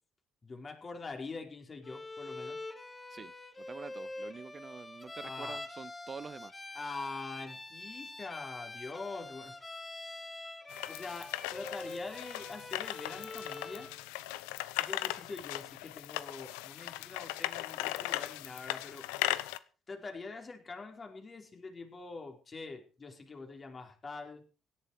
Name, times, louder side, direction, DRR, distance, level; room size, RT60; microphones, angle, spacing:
voice 1, 0.4-2.6 5.2-5.6 6.7-9.6 10.9-13.9 14.8-19.1 19.9-24.5, left 3 dB, 40° left, 4.8 m, -44 dB
Bowed string instrument, 1.8-14.0, left 2 dB, 20° left, 2.0 m, -45 dB
voice 2, 3.1-6.6, right 5 dB, 40° right, 0.9 m, -47 dB
sound 1, 10.7-19.6, left 17 dB, 85° left, 0.7 m, -38 dB
17.0 x 11.0 x 4.9 m
hypercardioid pair, 55°, 0 cm